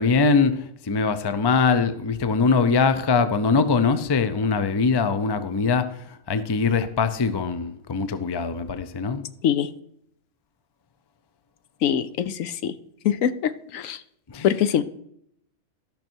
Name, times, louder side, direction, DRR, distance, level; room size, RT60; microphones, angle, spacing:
voice 1, 0.0-5.9 6.3-9.2 14.3-14.5, left 4 dB, 35° left, 0.4 m, -22 dB
voice 2, 11.8-12.7 13.0-13.3 13.7-14.0 14.4-14.8, left 9 dB, 75° left, 1.0 m, -22 dB
13.5 x 6.0 x 4.5 m
omnidirectional pair, 1.4 m